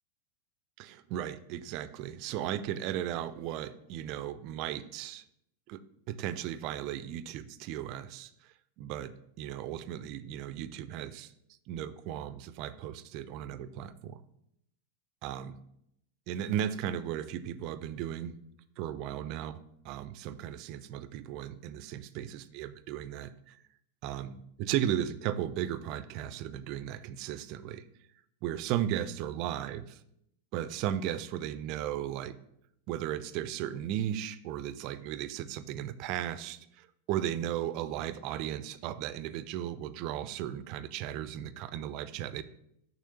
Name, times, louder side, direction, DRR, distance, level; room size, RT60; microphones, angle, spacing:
voice 1, 0.8-5.2 5.7-5.8 6.1-8.3 8.8-11.3 11.7-14.2 15.2-15.6 16.3-18.3 18.8-19.6 19.8-23.6 24.0-27.8 28.4-30.0 30.5-32.3 32.9-42.4, right 11 dB, 40° right, 13 dB, 0.3 m, -36 dB
6.7 x 3.0 x 5.5 m, 0.76 s
figure-of-eight pair, 90°, 0 cm